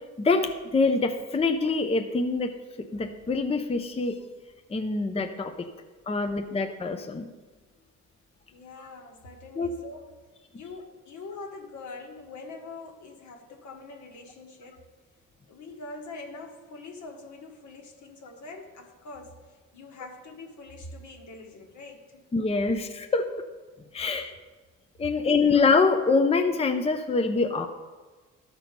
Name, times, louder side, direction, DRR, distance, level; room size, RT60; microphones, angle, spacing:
voice 1, 0.2-2.5 2.9-4.2 4.7-5.7 6.1-7.3 9.6-9.7 22.3-23.4 23.9-24.3 25.0-27.7, left 4 dB, 20° left, 6 dB, 0.6 m, -25 dB
voice 2, 8.5-10.2 10.5-14.9 15.5-19.4 19.7-22.2 24.1-24.4 25.3-25.4, left 3 dB, 70° left, 2 dB, 1.6 m, -44 dB
13.0 x 4.4 x 5.3 m, 1.3 s
cardioid pair, 90°, 30 cm